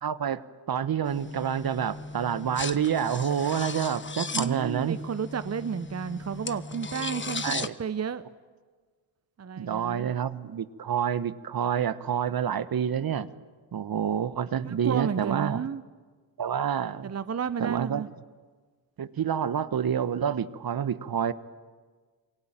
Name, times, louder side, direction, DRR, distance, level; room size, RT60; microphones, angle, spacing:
voice 1, 0.0-5.0 7.4-7.7 9.6-13.3 13.7-15.7 16.4-17.1 17.6-18.0 19.0-21.3, right 8 dB, 50° right, 14 dB, 1.3 m, -28 dB
sound 1, 1.0-7.7, left 3 dB, 25° left, 1.3 m, -36 dB
voice 2, 4.3-8.2 9.4-10.1 14.6-15.8 17.0-18.1, right 7 dB, 35° right, 13 dB, 1.1 m, -32 dB
27.5 x 23.5 x 9.0 m, 1.5 s
supercardioid pair, 50°, 46 cm